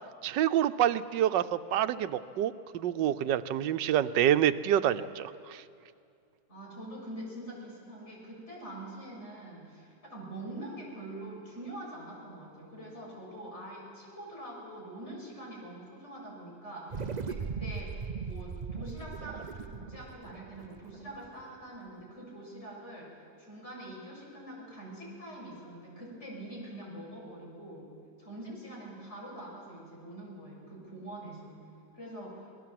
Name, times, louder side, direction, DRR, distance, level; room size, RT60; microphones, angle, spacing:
voice 1, 0.2-5.6, right 11 dB, 90° right, 12 dB, 1.4 m, -27 dB
voice 2, 6.5-17.9 18.2-23.1 23.4-27.8 28.2-31.6 31.9-32.5, right 1 dB, 40° left, -3 dB, 6.8 m, -44 dB
sound 1, 16.9-21.6, right 5 dB, 60° right, 0.4 m, -39 dB
26.0 x 19.0 x 7.7 m, 2.4 s
omnidirectional pair, 1.9 m